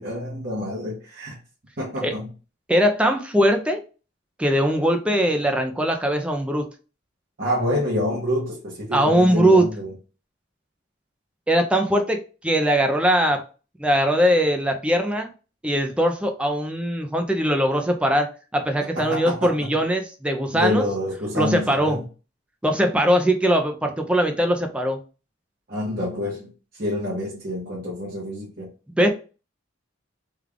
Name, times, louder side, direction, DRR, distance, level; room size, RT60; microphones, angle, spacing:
voice 1, 0.0-1.4 1.8-2.3 7.4-9.9 18.9-19.7 20.5-22.0 25.7-28.7, left 1 dB, 50° right, -6 dB, 1.1 m, -27 dB
voice 2, 2.7-3.8 4.4-6.7 8.9-9.7 11.5-13.4 13.8-15.3 15.6-20.8 21.3-22.0 22.6-25.0 29.0-29.1, equal, 5° right, 4 dB, 0.4 m, -21 dB
3.3 x 2.3 x 3.5 m, 0.34 s
head